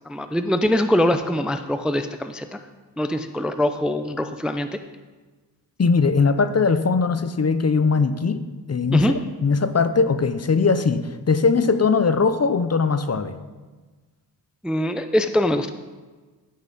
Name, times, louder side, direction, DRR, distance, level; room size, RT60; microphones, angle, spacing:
voice 1, 0.1-2.6 3.0-4.7 8.9-9.1 14.6-15.7, left 1 dB, ahead, 9 dB, 0.4 m, -23 dB
voice 2, 5.8-8.4 8.7-9.1 9.4-13.3, left 4 dB, 35° left, 11 dB, 0.6 m, -20 dB
15.5 x 5.6 x 4.0 m, 1.3 s
cardioid pair, 70°, 42 cm